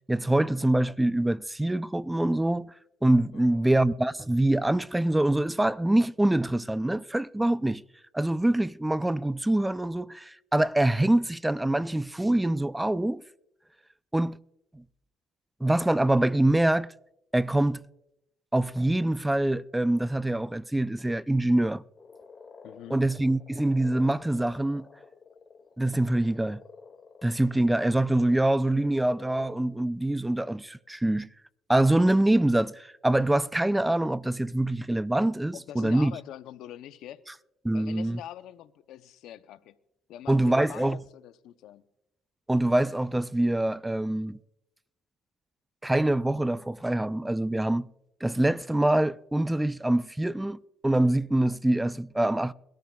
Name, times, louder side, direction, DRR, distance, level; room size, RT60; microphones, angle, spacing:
voice 1, 0.1-2.7 3.0-7.8 8.1-13.2 14.1-14.4 14.7-14.8 15.6-16.9 17.3-17.8 18.5-21.8 22.9-24.9 25.8-26.6 27.2-31.3 31.7-36.1 37.6-38.2 40.3-41.0 42.5-44.4 45.8-47.9 48.2-50.6 50.8-52.5, right 1 dB, 10° right, 0.4 m, -25 dB
voice 2, 3.3-3.9 22.6-23.0 35.5-37.2 37.7-39.8 40.1-41.9, left 12 dB, 75° left, 0.6 m, -44 dB
sound 1, 22.0-29.6, left 5 dB, 35° left, 2.0 m, -51 dB
23.0 x 13.5 x 2.3 m
supercardioid pair, 75°, 0 cm